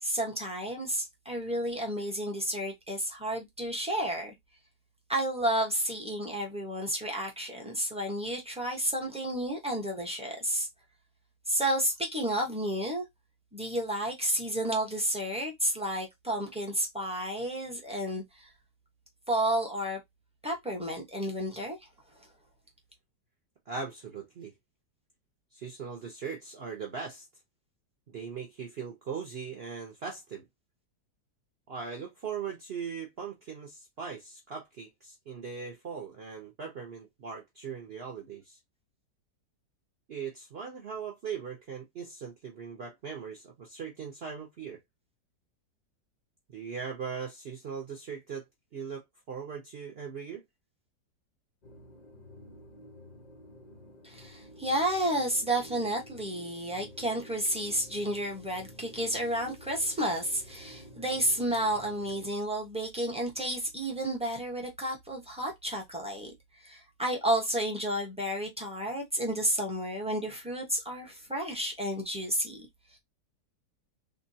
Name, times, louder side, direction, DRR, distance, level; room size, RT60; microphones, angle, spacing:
voice 1, 0.0-4.3 5.1-10.7 11.5-13.0 13.5-18.5 19.3-20.0 20.4-21.9 22.2-22.3 54.0-66.3 66.6-73.0, right 1 dB, 5° right, 0.5 m, -31 dB
voice 2, 23.7-24.5 25.5-27.3 28.1-30.4 31.7-38.6 40.1-44.8 46.5-48.4 48.7-50.4, right 6 dB, 55° right, 0.7 m, -39 dB
sound 1, 51.6-62.3, equal, 75° left, 0.4 m, -51 dB
3.7 x 2.2 x 2.7 m
omnidirectional pair, 1.8 m